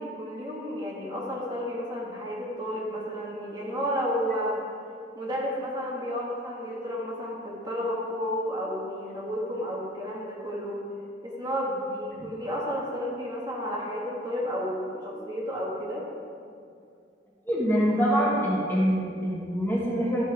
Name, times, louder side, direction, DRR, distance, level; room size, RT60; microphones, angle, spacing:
voice 1, 0.0-4.6 5.1-10.8 11.2-16.0, equal, 25° right, -5 dB, 1.6 m, -32 dB
voice 2, 17.5-20.2, equal, 10° left, -6 dB, 1.7 m, -25 dB
12.5 x 5.7 x 4.8 m, 2.3 s
head